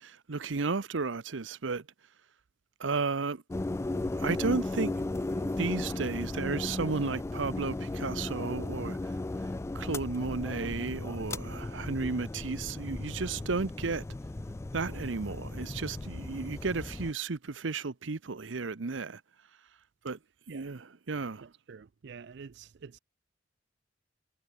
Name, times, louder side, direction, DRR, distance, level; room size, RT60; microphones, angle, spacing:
voice 1, 0.0-1.9 2.8-3.6 3.9-5.1 5.3-9.1 9.7-14.0 14.7-19.2 20.0-20.2 20.5-21.5, right 4 dB, 85° right, 0.8 m, -33 dB
sound 1, 3.5-17.1, left 2 dB, 15° left, 0.3 m, -36 dB
voice 2, 21.4-23.0, right 5 dB, 65° right, 0.5 m, -48 dB
head